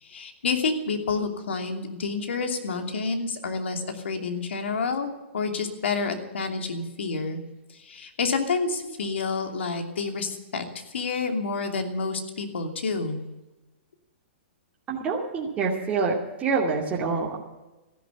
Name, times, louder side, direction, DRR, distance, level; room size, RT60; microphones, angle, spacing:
voice 1, 0.0-7.4 7.7-10.6 10.9-13.2, left 4 dB, 80° left, 5 dB, 2.9 m, -29 dB
voice 2, 14.9-17.4, right 4 dB, 20° right, -4 dB, 2.6 m, -26 dB
14.5 x 12.0 x 8.2 m, 1.0 s
hypercardioid pair, 130°, 6 cm